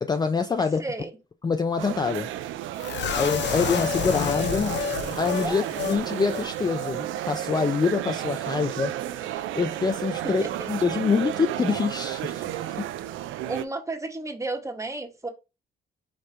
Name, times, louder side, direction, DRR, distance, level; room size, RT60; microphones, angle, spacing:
voice 1, 0.0-0.8 1.4-2.3 3.1-4.7 5.2-10.4 10.7-12.9, left 5 dB, 20° left, 0.4 m, -26 dB
voice 2, 0.6-1.1 5.4-5.7 10.4-10.7 13.5-15.3, right 2 dB, 15° right, 1.0 m, -33 dB
sound 1, 1.8-13.6, right 13 dB, 80° right, 0.4 m, -32 dB
sound 2, 2.8-6.0 6.3-6.4 6.8-6.9, left 9 dB, 65° left, 0.7 m, -29 dB
5.1 x 2.8 x 3.3 m
cardioid pair, 90°, 20 cm